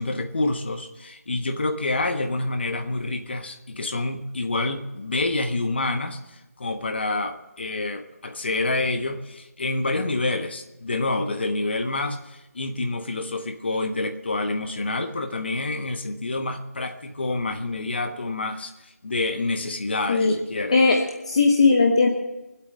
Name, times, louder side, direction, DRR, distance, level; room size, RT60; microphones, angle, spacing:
voice 1, 0.0-20.8, left 2 dB, 40° left, 7 dB, 1.3 m, -28 dB
voice 2, 20.7-21.0 21.3-22.1, left 4 dB, 25° left, 1 dB, 0.9 m, -17 dB
23.0 x 8.3 x 6.7 m, 1.0 s
figure-of-eight pair, 170°, 8 cm